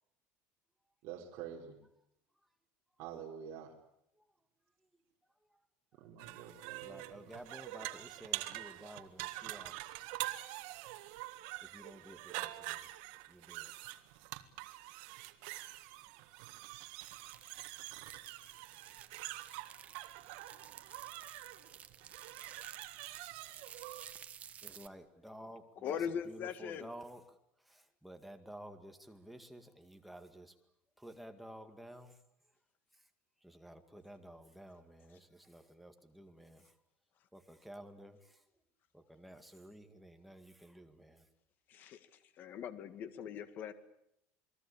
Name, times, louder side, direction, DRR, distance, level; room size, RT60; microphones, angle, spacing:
voice 1, 1.0-1.8 3.0-3.7 6.0-7.5, right 8 dB, 55° right, 0 dB, 4.3 m, -48 dB
sound 1, 6.2-24.1, right 18 dB, 75° right, 1.8 m, -45 dB
voice 2, 6.8-9.8 11.7-12.9 13.3-14.0 24.6-26.0 26.3-27.2 27.7-30.5 31.0-32.2 33.4-36.6 37.3-38.2 38.9-41.2, right 1 dB, ahead, 6 dB, 2.1 m, -52 dB
sound 2, 17.0-24.9, right 8 dB, 30° right, 1.3 m, -54 dB
voice 3, 25.8-26.9 41.7-43.7, left 8 dB, 40° left, 11 dB, 2.0 m, -41 dB
28.5 x 20.5 x 8.7 m, 0.77 s
cardioid pair, 165°, 5 cm